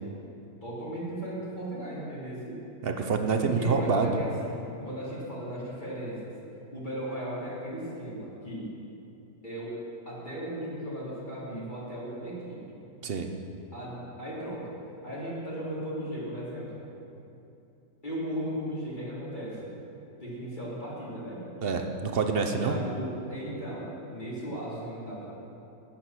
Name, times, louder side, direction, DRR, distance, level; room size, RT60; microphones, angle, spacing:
voice 1, 0.6-2.6 3.3-6.3 6.7-8.7 9.4-9.8 10.0-12.8 13.7-14.7 15.0-16.8 18.0-19.7 20.2-21.4 22.4-25.3, right 1 dB, 30° left, -7 dB, 3.0 m, -36 dB
voice 2, 2.8-4.2 13.0-13.3 21.6-22.8, right 5 dB, 50° right, 5 dB, 0.8 m, -27 dB
11.5 x 8.9 x 6.0 m, 2.8 s
omnidirectional pair, 1.6 m